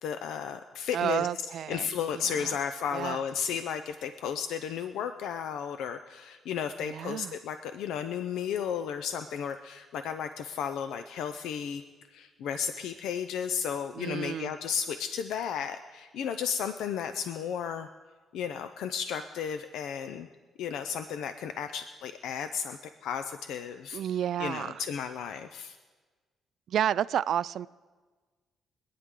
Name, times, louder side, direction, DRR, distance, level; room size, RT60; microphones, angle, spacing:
voice 1, 0.0-1.3 1.7-11.8 12.1-17.9 18.3-20.3 20.6-24.0 24.4-25.8, left 7 dB, 85° left, 9 dB, 0.5 m, -34 dB
voice 2, 0.9-2.5 2.9-3.2 6.8-7.4 13.9-14.5 23.9-24.8 26.7-27.7, right 10 dB, 70° right, 18 dB, 0.3 m, -31 dB
24.0 x 9.6 x 3.8 m, 1.4 s
cardioid pair, 90°, 0 cm